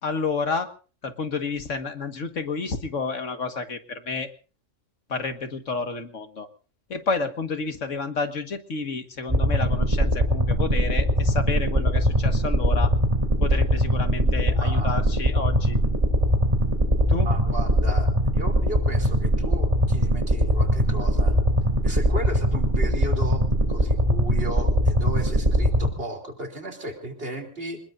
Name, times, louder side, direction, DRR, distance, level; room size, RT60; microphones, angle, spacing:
voice 1, 0.0-0.7 1.0-4.3 5.1-6.5 6.9-12.9 13.4-15.8 17.1-17.3, left 4 dB, 85° left, 7 dB, 2.0 m, -30 dB
sound 1, 9.3-25.9, equal, 25° right, 3.2 m, -21 dB
voice 2, 14.5-15.0 17.2-21.4 21.8-23.4 23.7-27.8, right 1 dB, 50° right, 4 dB, 3.5 m, -35 dB
27.5 x 20.0 x 2.6 m, 0.38 s
omnidirectional pair, 1.3 m